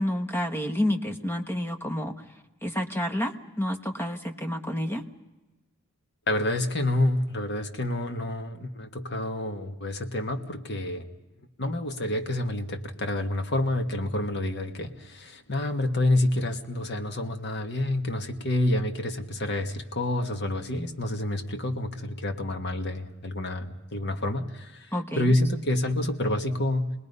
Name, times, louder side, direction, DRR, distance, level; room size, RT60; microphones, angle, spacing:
voice 1, 0.0-2.2 2.6-5.0 24.9-25.4, left 1 dB, 10° left, 5 dB, 1.2 m, -29 dB
voice 2, 6.3-11.0 11.4-26.9, left 1 dB, 50° left, 6 dB, 1.6 m, -28 dB
28.0 x 20.5 x 5.5 m, 1.1 s
head